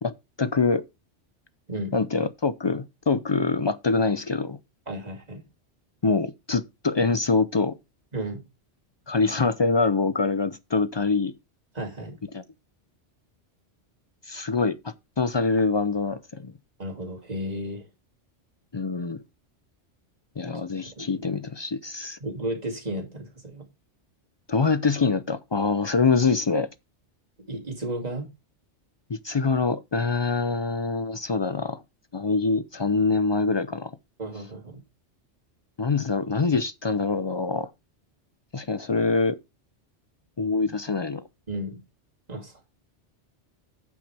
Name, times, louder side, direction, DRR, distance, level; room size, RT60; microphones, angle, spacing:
voice 1, 0.0-0.8 1.9-4.6 6.0-7.8 9.1-11.3 12.3-12.4 14.3-16.5 18.7-19.2 20.4-22.2 24.5-26.7 29.1-31.8 32.1-33.9 35.8-37.7 38.5-39.4 40.4-41.3, left 4 dB, 45° left, 0.3 m, -25 dB
voice 2, 4.9-5.4 8.1-8.4 11.7-12.2 16.8-17.9 21.0-21.3 22.2-23.6 27.5-28.3 34.2-34.8 41.5-41.8 42.3-42.5, right 1 dB, 35° right, 2.6 m, -33 dB
8.9 x 7.7 x 3.4 m
omnidirectional pair, 1.2 m